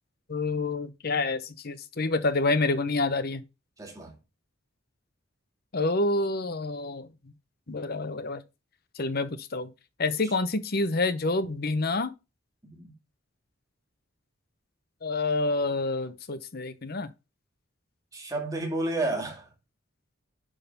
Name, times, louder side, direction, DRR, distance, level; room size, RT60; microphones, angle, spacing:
voice 1, 0.3-3.4 5.7-7.1 7.7-8.4 9.0-9.7 10.0-12.1 15.0-17.1, left 3 dB, 50° left, 0.8 m, -28 dB
voice 2, 3.8-4.2 10.0-10.1 12.6-12.9 18.1-19.5, right 2 dB, 15° right, 2.4 m, -31 dB
11.0 x 3.9 x 5.4 m
head